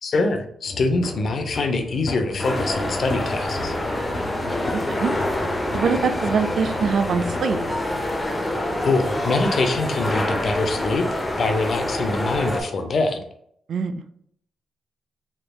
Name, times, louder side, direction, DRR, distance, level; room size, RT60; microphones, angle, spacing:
voice 1, 0.0-3.7 8.8-13.2, left 3 dB, 55° left, 6 dB, 0.5 m, -24 dB
sound 1, 0.6-7.8, left 3 dB, 85° left, 1.2 m, -35 dB
sound 2, 2.4-12.6, left 1 dB, 15° left, 0.6 m, -26 dB
voice 2, 4.7-5.1 5.7-7.6 13.7-14.0, right 6 dB, 65° right, 10 dB, 0.3 m, -23 dB
3.2 x 3.0 x 2.3 m, 0.68 s
cardioid pair, 85°, 0 cm